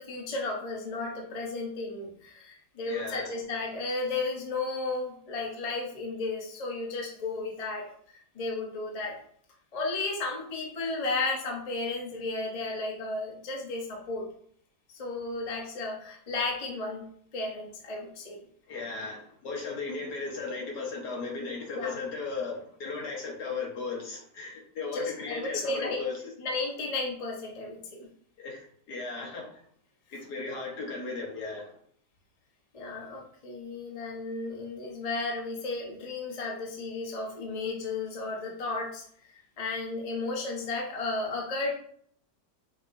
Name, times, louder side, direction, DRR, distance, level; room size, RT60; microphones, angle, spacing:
voice 1, 0.0-9.2 9.7-14.3 14.9-17.0 17.3-18.4 21.8-22.0 24.9-26.0 26.4-28.1 32.7-39.0 39.6-41.8, left 3 dB, 30° left, -1 dB, 0.7 m, -34 dB
voice 2, 2.8-3.3 18.7-26.1 28.4-29.6 30.1-31.7, left 4 dB, 70° left, -1 dB, 1.6 m, -36 dB
5.9 x 3.0 x 2.6 m, 0.62 s
omnidirectional pair, 1.9 m